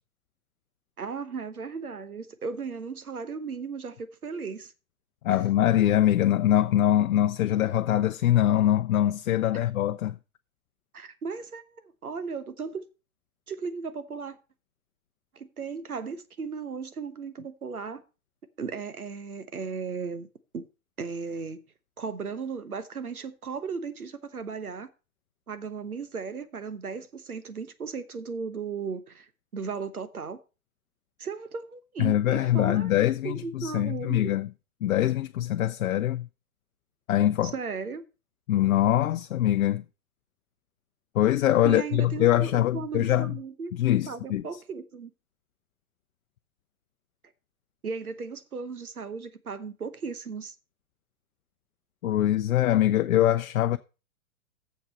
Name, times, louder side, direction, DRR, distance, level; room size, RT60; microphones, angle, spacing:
voice 1, 1.0-4.7 9.5-9.6 10.9-12.8 13.5-14.4 15.3-18.0 18.6-20.3 20.5-20.6 21.0-21.6 22.0-24.9 25.5-30.4 31.2-32.9 33.2-34.3 37.4-38.0 41.6-43.7 44.1-45.1 47.8-50.5, right 5 dB, 90° right, 1.2 m, -36 dB
voice 2, 5.2-10.2 32.0-34.5 34.8-36.3 37.1-37.5 38.5-39.8 41.1-43.4 43.7-44.4 52.0-53.8, left 12 dB, 70° left, 0.6 m, -23 dB
7.2 x 6.1 x 7.4 m
hypercardioid pair, 110°, 42 cm